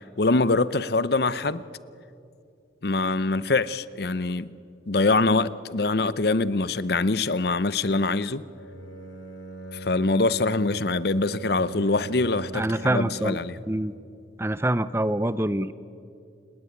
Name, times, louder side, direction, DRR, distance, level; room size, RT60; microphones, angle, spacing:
voice 1, 0.2-1.6 2.8-4.5 4.9-8.4 9.7-13.6, left 3 dB, 55° left, 0.7 m, -24 dB
Bowed string instrument, 8.5-13.6, right 4 dB, 90° left, 3.4 m, -40 dB
voice 2, 12.5-13.4 13.7-13.9 14.4-15.7, right 1 dB, 15° right, 0.5 m, -25 dB
29.0 x 19.5 x 9.6 m
head